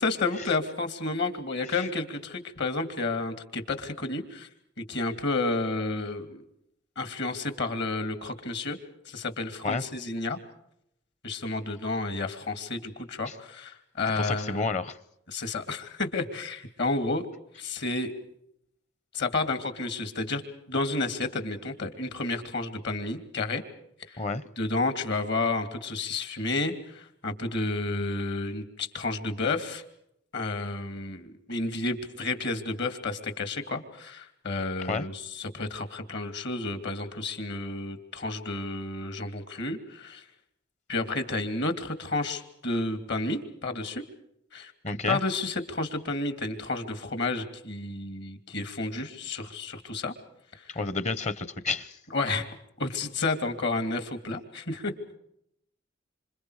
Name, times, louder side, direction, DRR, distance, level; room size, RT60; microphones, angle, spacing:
voice 1, 0.0-4.5 4.9-6.4 7.0-8.8 9.1-10.4 11.2-14.7 15.3-17.3 17.6-18.1 19.1-20.4 20.7-23.6 24.1-24.2 24.6-29.8 30.3-40.2 40.9-44.0 44.5-50.1 50.5-50.8 52.1-52.5 52.8-54.9, left 3 dB, 60° left, 9 dB, 2.9 m, -31 dB
voice 2, 14.2-15.0 24.2-24.4 34.9-35.1 44.8-45.2 50.7-52.0, left 3 dB, 35° left, 16 dB, 1.0 m, -30 dB
27.0 x 27.0 x 5.0 m, 0.75 s
head